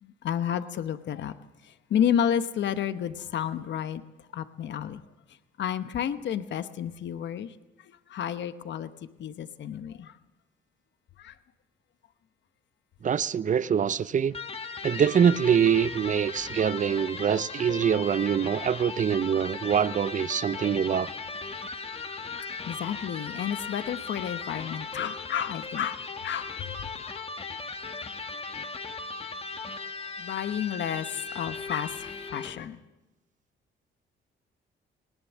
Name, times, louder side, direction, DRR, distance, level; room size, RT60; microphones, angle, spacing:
voice 1, 0.0-1.4 1.6-4.0 4.3-5.0 5.6-8.9 9.2-10.2 11.2-11.4 22.1-26.7 30.2-32.8, left 9 dB, 65° left, 1.0 m, -31 dB
voice 2, 13.0-14.4 14.8-21.1, right 8 dB, 40° right, 0.6 m, -24 dB
Electric guitar, 14.3-32.7, left 4 dB, 30° left, 1.3 m, -38 dB
19.0 x 18.5 x 7.4 m
cardioid pair, 90°, 20 cm